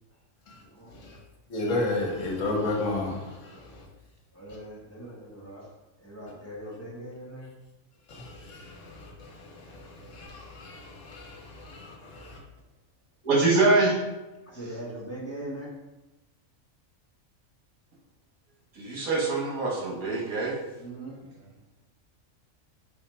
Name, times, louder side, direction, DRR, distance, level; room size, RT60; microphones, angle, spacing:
voice 1, 0.9-1.2 1.5-3.9 8.1-12.4, left 2 dB, 65° left, -1 dB, 1.3 m, -33 dB
voice 2, 4.3-5.6 6.0-7.5 14.5-15.7 20.8-21.1, right 1 dB, 15° left, -6 dB, 0.9 m, -40 dB
voice 3, 13.2-14.1 14.5-14.8 18.7-20.6 21.2-21.3, right 3 dB, 90° right, -3 dB, 1.7 m, -24 dB
4.9 x 2.4 x 4.3 m, 1.0 s
omnidirectional pair, 1.4 m